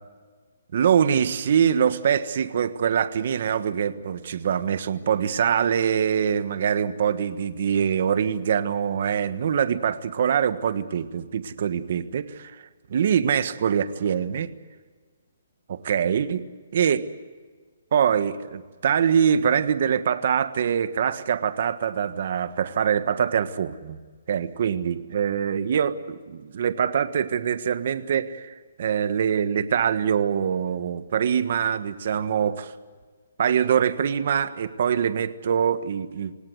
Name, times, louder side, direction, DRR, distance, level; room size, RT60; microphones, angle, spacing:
voice 1, 0.7-12.6 12.9-14.5 15.7-16.4 16.7-17.0 17.9-24.0 24.3-32.7 33.4-36.3, right 8 dB, 50° right, 12 dB, 1.4 m, -24 dB
27.0 x 18.0 x 8.0 m, 1.5 s
hypercardioid pair, 165°, 0 cm